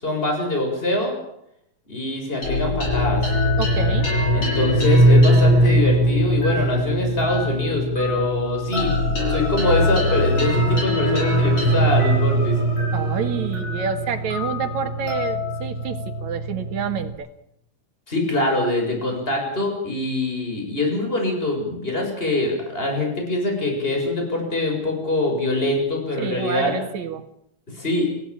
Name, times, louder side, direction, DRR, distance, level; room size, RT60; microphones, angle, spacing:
voice 1, 0.0-1.1 1.9-3.2 4.3-12.6 18.1-26.8 27.7-28.1, left 2 dB, 15° left, 2 dB, 7.0 m, -24 dB
sound 1, 2.4-17.1, equal, 40° left, 8.0 m, -21 dB
voice 2, 3.6-4.1 12.9-17.3 26.2-27.2, right 7 dB, 70° right, 8 dB, 3.0 m, -28 dB
27.0 x 15.0 x 8.8 m, 0.80 s
omnidirectional pair, 3.4 m